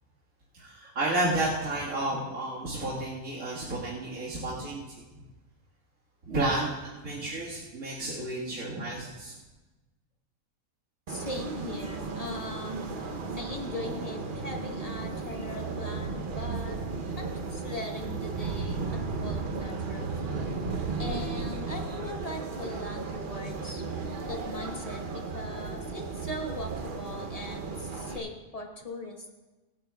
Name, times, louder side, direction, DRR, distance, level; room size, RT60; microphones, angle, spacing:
voice 1, 0.5-4.8 6.2-9.3, right 2 dB, 75° right, -7 dB, 2.2 m, -31 dB
voice 2, 11.1-12.9 13.4-16.8 17.2-20.3 21.0-23.8 24.3-29.3, left 2 dB, 30° left, 1 dB, 1.2 m, -40 dB
sound 1, 11.1-28.2, right 4 dB, 45° right, 0.8 m, -35 dB
24.5 x 8.7 x 2.3 m, 1.2 s
omnidirectional pair, 1.5 m